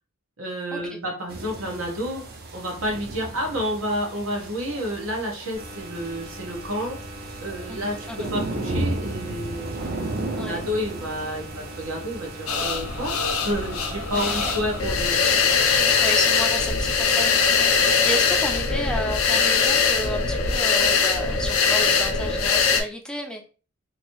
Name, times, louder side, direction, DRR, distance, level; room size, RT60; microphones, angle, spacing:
voice 1, 0.4-2.3 2.5-7.0 7.4-13.2 13.4-15.1, equal, 85° right, 0 dB, 1.1 m, -30 dB
sound 1, 1.3-18.7, right 2 dB, 50° right, 0.6 m, -36 dB
sound 2, 5.6-15.5, right 1 dB, 70° right, 1.5 m, -41 dB
voice 2, 7.7-8.3 10.3-10.6 14.1-14.5 15.6-23.5, equal, 5° left, 2 dB, 0.4 m, -32 dB
sound 3, 12.5-22.8, left 5 dB, 80° left, 0.6 m, -21 dB
3.0 x 2.7 x 2.9 m, 0.36 s
head